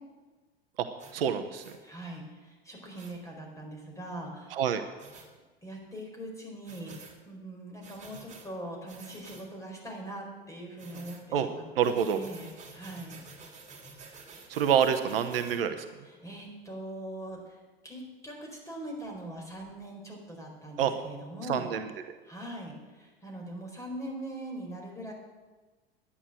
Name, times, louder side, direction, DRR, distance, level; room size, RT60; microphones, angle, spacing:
sound 1, 1.0-1.2 1.6-1.8 3.0-3.1 5.0-5.3 6.6-7.2 7.8-8.5 8.9-9.5 10.8-11.2 11.8-15.6, right 4 dB, 25° right, 2.9 m, -50 dB
voice 1, 1.1-1.6 4.5-4.8 11.3-11.5 11.8-12.2 14.5-15.9 20.8-20.9 21.5-21.9, right 8 dB, 65° right, 9 dB, 1.0 m, -27 dB
voice 2, 1.8-4.6 5.6-6.9 7.2-11.7 12.1-13.2 14.4-14.5 16.0-21.7 22.3-25.1, right 1 dB, 10° left, 0 dB, 4.5 m, -42 dB
11.0 x 9.8 x 7.6 m, 1.3 s
figure-of-eight pair, 80°, 31 cm